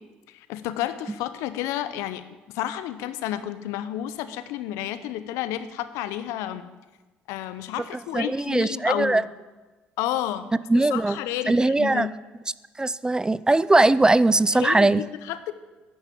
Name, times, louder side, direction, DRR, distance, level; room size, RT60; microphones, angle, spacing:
voice 1, 0.3-6.6 7.3-9.2 10.0-12.1 14.5-15.5, left 12 dB, 75° left, 12 dB, 0.6 m, -31 dB
voice 2, 8.1-9.2 10.7-11.2 11.5-12.1 12.8-15.0, right 2 dB, 15° right, 18 dB, 0.3 m, -20 dB
9.2 x 5.7 x 7.4 m, 1.2 s
hypercardioid pair, 55°, 5 cm